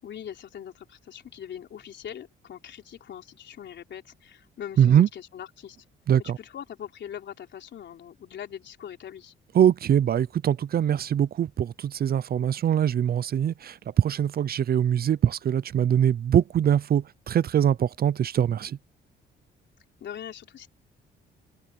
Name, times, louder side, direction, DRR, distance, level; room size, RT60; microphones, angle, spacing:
voice 1, 0.0-5.8 6.2-9.3 20.0-20.7, left 9 dB, 65° left, 3.8 m, -41 dB
voice 2, 4.8-5.1 6.1-6.4 9.5-18.8, right 9 dB, 50° right, 0.6 m, -23 dB
cardioid pair, 90°, 20 cm